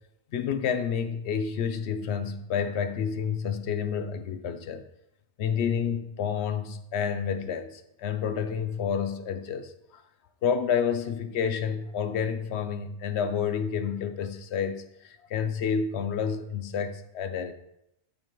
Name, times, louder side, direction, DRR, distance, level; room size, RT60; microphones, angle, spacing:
voice 1, 0.3-4.8 5.4-10.0 10.4-17.5, left 7 dB, 75° left, 0.9 m, -29 dB
9.4 x 5.2 x 3.0 m
omnidirectional pair, 1.1 m